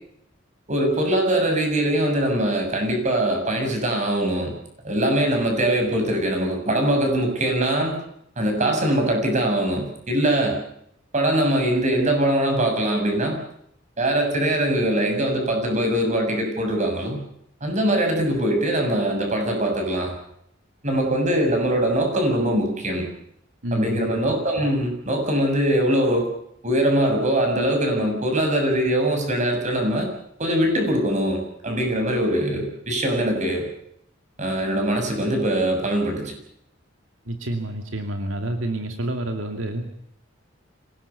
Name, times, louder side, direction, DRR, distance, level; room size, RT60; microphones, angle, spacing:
voice 1, 0.7-4.5 4.8-8.0 8.4-10.6 11.1-13.4 14.0-17.2 17.6-20.1 20.8-23.1 23.7-26.3 26.6-30.1 30.4-33.7 34.4-36.3, right 1 dB, 40° right, 3 dB, 7.0 m, -22 dB
voice 2, 23.6-24.1 37.3-39.8, right 1 dB, 85° right, 5 dB, 2.6 m, -28 dB
25.5 x 18.0 x 7.0 m, 0.72 s
head